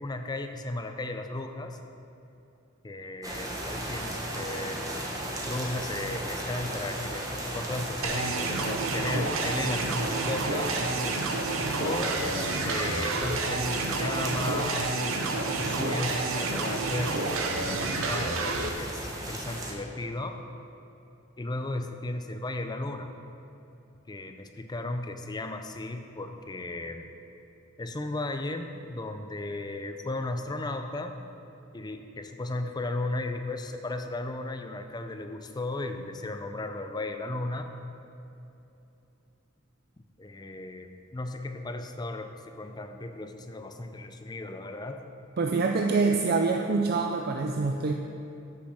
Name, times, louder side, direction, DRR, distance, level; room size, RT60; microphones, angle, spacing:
voice 1, 0.0-1.8 2.8-4.8 5.4-10.7 11.8-20.4 21.4-23.1 24.1-27.1 27.8-31.2 31.7-37.7 40.2-45.0, left 2 dB, 20° left, 6 dB, 0.5 m, -35 dB
sound 1, 3.2-19.7, right 1 dB, 15° right, 1.2 m, -36 dB
sound 2, 8.0-18.7, right 3 dB, 90° right, 0.8 m, -30 dB
voice 2, 45.4-47.9, right 4 dB, 50° right, 3 dB, 0.4 m, -25 dB
7.9 x 6.8 x 6.2 m, 2.8 s
head